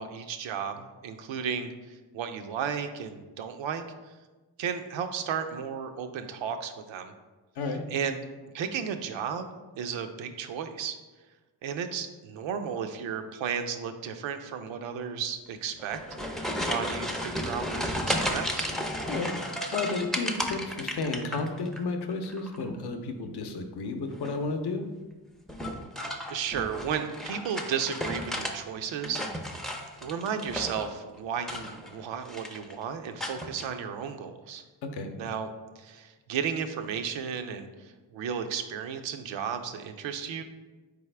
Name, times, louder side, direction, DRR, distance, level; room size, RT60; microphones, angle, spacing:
voice 1, 0.0-1.7 2.1-3.8 4.6-7.1 7.9-8.2 8.5-9.5 9.8-11.0 11.6-16.0 16.4-18.7 26.3-29.2 30.0-34.6 35.2-35.5 35.8-40.4, right 7 dB, 80° right, 7 dB, 0.5 m, -34 dB
sound 1, 15.8-21.8 22.1-22.7 24.1-24.5 25.5-28.6 28.9-30.9 31.4-32.0 32.3-32.7 33.2-33.7, equal, ahead, 0.4 m, -33 dB
voice 2, 19.7-24.8 34.8-35.1, left 3 dB, 60° left, 6 dB, 0.7 m, -32 dB
4.0 x 3.5 x 3.3 m, 1.2 s
supercardioid pair, 50°, 45 cm